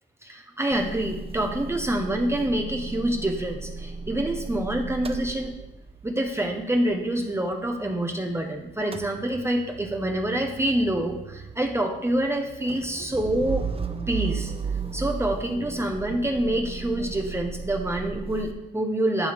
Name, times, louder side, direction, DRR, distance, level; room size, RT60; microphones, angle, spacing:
voice 1, 0.2-5.5 6.0-13.6 14.1-14.5 14.9-19.3, right 1 dB, 15° right, 2 dB, 1.2 m, -26 dB
Motor vehicle (road) / Engine starting / Idling, 0.7-8.4 8.7-18.5, right 5 dB, 30° right, 0.9 m, -36 dB
11.0 x 6.2 x 5.3 m, 0.96 s
cardioid pair, 90°, 20 cm